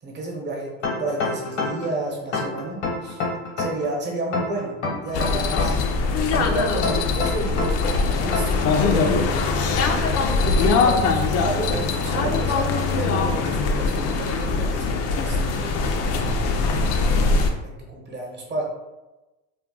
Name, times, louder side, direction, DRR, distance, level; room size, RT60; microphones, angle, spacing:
voice 1, 0.0-0.7 1.0-3.2 3.6-4.8 5.0-5.8 6.3-9.3 10.4-16.2 17.0-18.6, right 2 dB, 30° right, -2 dB, 0.9 m, -31 dB
sound 1, 0.8-1.9 2.3-3.9 4.3-5.9 6.3-7.9 8.3-8.6, left 3 dB, 90° left, 1.0 m, -27 dB
sound 2, 5.1-17.5, left 4 dB, 45° left, 0.4 m, -22 dB
2.3 x 2.1 x 3.7 m, 1.1 s
supercardioid pair, 110°, 35 cm